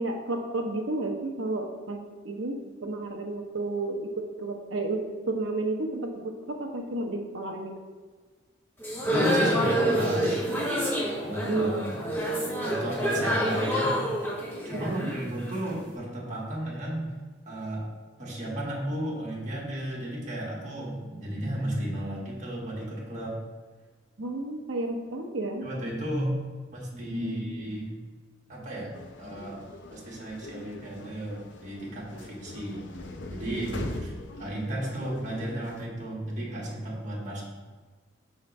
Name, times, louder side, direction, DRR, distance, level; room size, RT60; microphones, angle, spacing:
voice 1, 0.0-2.0 2.2-7.7 11.4-11.8 14.7-15.1 24.2-25.7 27.0-27.5 33.5-33.9, right 2 dB, 70° right, 2 dB, 0.9 m, -32 dB
sound 1, 8.8-15.8, equal, 10° left, 1.1 m, -27 dB
voice 2, 9.1-10.6 11.2-12.0 12.6-13.9 14.6-17.0 17.5-17.8 18.2-23.3 25.6-26.4 26.7-28.0 28.5-29.6 29.9-32.8 33.3-34.1 34.4-37.4, right 1 dB, 40° right, -5 dB, 1.7 m, -33 dB
sound 2, 28.9-35.9, left 2 dB, 60° left, 0.6 m, -41 dB
5.6 x 3.9 x 5.3 m, 1.4 s
head